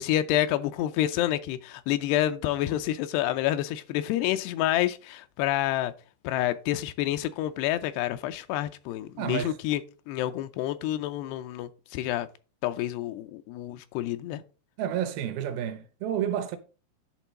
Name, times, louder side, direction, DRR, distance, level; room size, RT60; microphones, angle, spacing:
voice 1, 0.0-5.9 6.2-9.8 10.1-12.3 12.6-14.4, left 13 dB, 85° left, 2.6 m, -28 dB
voice 2, 9.2-9.6 14.8-16.6, right 9 dB, 75° right, 2.5 m, -30 dB
10.5 x 3.8 x 5.2 m
omnidirectional pair, 4.7 m